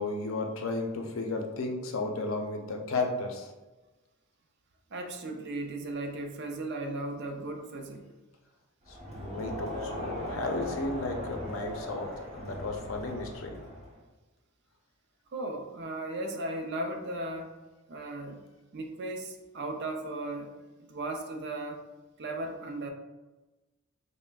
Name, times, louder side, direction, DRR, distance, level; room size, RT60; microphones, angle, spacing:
voice 1, 0.0-3.5 8.9-13.6, left 2 dB, 75° left, 3 dB, 0.5 m, -34 dB
voice 2, 4.9-8.1 15.3-17.6 17.9-18.4 18.7-20.5 20.8-21.8 22.2-22.9, right 2 dB, 55° right, 4 dB, 0.5 m, -36 dB
Crowd, 8.8-14.0, equal, 30° right, 1.1 m, -39 dB
5.4 x 2.1 x 2.3 m, 1.1 s
head